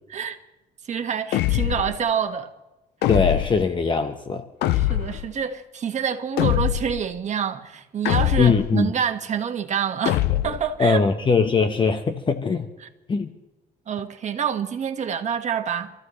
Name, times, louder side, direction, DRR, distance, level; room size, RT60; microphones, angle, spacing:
voice 1, 0.8-2.5 4.7-11.0 12.8-12.9 13.9-15.9, right 7 dB, 45° right, 1.6 m, -27 dB
sound 1, 1.3-2.0 3.0-3.6 4.6-5.3 6.4-7.0 8.0-8.7 10.0-10.7, left 14 dB, 80° left, 0.7 m, -23 dB
voice 2, 3.1-4.4 8.4-8.9 10.8-12.7 13.1-13.3, left 5 dB, 30° left, 1.1 m, -21 dB
27.0 x 14.5 x 3.2 m
cardioid pair, 110°, 17 cm